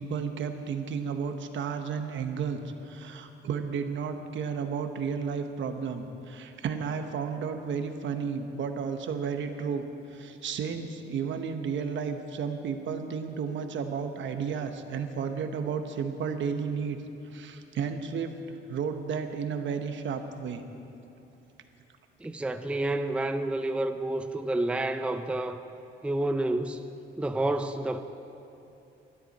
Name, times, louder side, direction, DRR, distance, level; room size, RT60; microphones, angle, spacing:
voice 1, 0.0-17.0 17.3-18.3 18.7-20.6, right 6 dB, 70° right, 7 dB, 1.1 m, -32 dB
voice 2, 22.2-25.6 26.0-26.8 27.2-28.0, right 2 dB, 5° right, 8 dB, 0.5 m, -29 dB
19.5 x 13.0 x 4.2 m, 2.8 s
cardioid pair, 125°, 20 cm